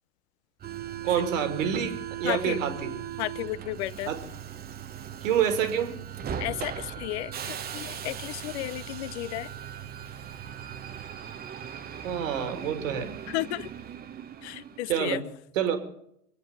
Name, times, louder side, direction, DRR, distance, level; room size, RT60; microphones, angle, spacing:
Subway metro underground, 0.6-15.0, right 9 dB, 20° right, 0.9 m, -39 dB
voice 1, 1.0-2.9 4.1-4.2 5.2-6.0 12.0-13.1 14.9-15.2 15.5-15.8, right 8 dB, 65° right, 7 dB, 2.6 m, -27 dB
voice 2, 2.2-2.6 3.2-4.1 6.4-9.5 13.3-13.7 14.4-15.2, left 17 dB, 50° left, 19 dB, 0.7 m, -33 dB
25.5 x 9.0 x 5.5 m, 0.73 s
figure-of-eight pair, 85°, 43 cm